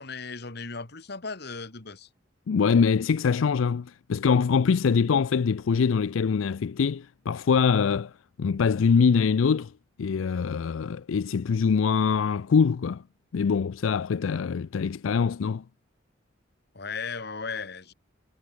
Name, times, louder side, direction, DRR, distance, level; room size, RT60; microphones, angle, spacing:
voice 1, 0.0-2.1 16.7-17.9, left 4 dB, 55° left, 1.9 m, -36 dB
voice 2, 2.5-8.1 8.4-9.7 10.0-13.0 13.3-15.6, left 6 dB, 85° left, 0.4 m, -23 dB
head